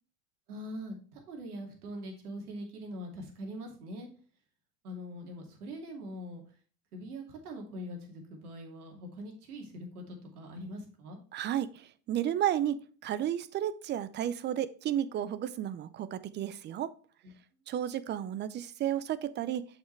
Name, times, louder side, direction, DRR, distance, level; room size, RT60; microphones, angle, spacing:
voice 1, 0.5-4.1 4.8-6.4 6.9-11.2, equal, 85° right, 2.6 m, -42 dB
voice 2, 11.3-16.9 17.7-19.7, right 11 dB, 25° right, 0.5 m, -32 dB
7.3 x 5.7 x 3.3 m
hypercardioid pair, 105°, 44 cm